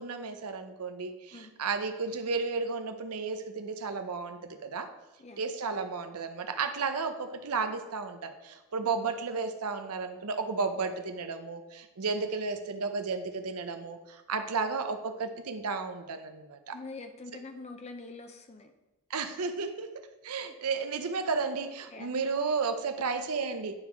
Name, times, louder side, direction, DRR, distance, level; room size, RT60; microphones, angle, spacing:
voice 1, 0.0-4.9 5.4-16.8 19.1-19.9 20.2-23.8, right 4 dB, 90° right, 7 dB, 0.7 m, -33 dB
voice 2, 16.7-18.7 21.9-22.1, left 3 dB, 30° left, 6 dB, 0.5 m, -45 dB
9.6 x 3.8 x 6.0 m, 1.0 s
head